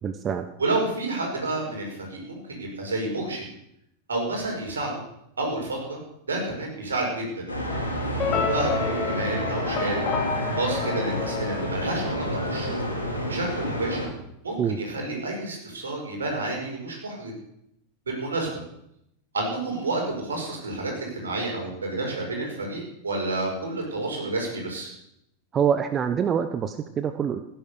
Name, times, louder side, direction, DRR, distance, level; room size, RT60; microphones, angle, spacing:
voice 1, 0.0-0.4 14.6-14.8 25.5-27.4, right 7 dB, 25° right, 9 dB, 1.0 m, -25 dB
voice 2, 0.6-3.4 4.1-4.9 5.4-6.0 6.3-7.4 8.1-10.0 10.6-12.9 13.3-14.1 14.4-17.3 18.1-18.6 19.3-24.9, right 2 dB, 70° right, 0 dB, 5.5 m, -30 dB
sound 1, 7.5-14.1, equal, 80° left, 4.7 m, -29 dB
sound 2, 8.2-12.5, left 6 dB, 30° left, 2.9 m, -30 dB
16.0 x 10.5 x 6.9 m, 0.77 s
figure-of-eight pair, 90°, 0 cm